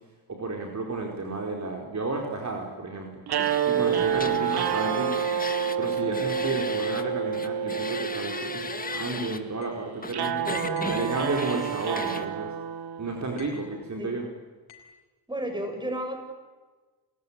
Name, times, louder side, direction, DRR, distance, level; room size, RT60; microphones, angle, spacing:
voice 1, 0.3-3.2 3.7-5.2 5.8-10.4 10.9-12.5 13.0-14.3, right 3 dB, 40° right, 1 dB, 4.8 m, -32 dB
sound 1, 3.3-13.5, right 8 dB, 60° right, 1.6 m, -29 dB
sound 2, 3.4-7.0 7.3-9.4 10.0-12.3, left 3 dB, 20° left, 2.0 m, -36 dB
voice 2, 3.7-4.1 10.4-10.9 13.9-14.2 15.3-16.2, right 1 dB, 10° right, 4 dB, 7.5 m, -33 dB
sound 3, 9.6-9.8 10.7-11.1 12.1-12.4 13.4-13.7 14.7-15.0, left 7 dB, 85° left, 5.5 m, -50 dB
29.5 x 16.5 x 9.9 m, 1.3 s
cardioid pair, 85°, 43 cm